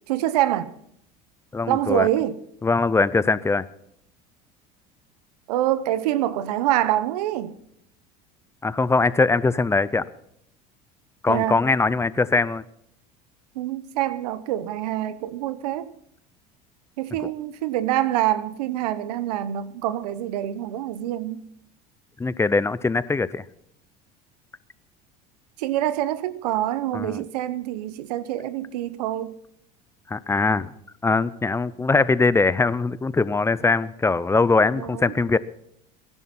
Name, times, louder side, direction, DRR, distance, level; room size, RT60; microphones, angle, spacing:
voice 1, 0.1-0.7 1.7-2.4 5.5-7.6 11.3-11.6 13.5-15.9 17.0-21.4 25.6-29.4 34.7-35.1, right 13 dB, 90° right, 1.0 m, -25 dB
voice 2, 1.5-2.1 2.6-3.6 8.6-10.1 11.2-12.6 22.2-23.4 26.9-27.2 30.1-30.7 31.0-35.4, left 3 dB, 15° left, 0.6 m, -21 dB
22.5 x 11.0 x 4.3 m
supercardioid pair, 105°, 20 cm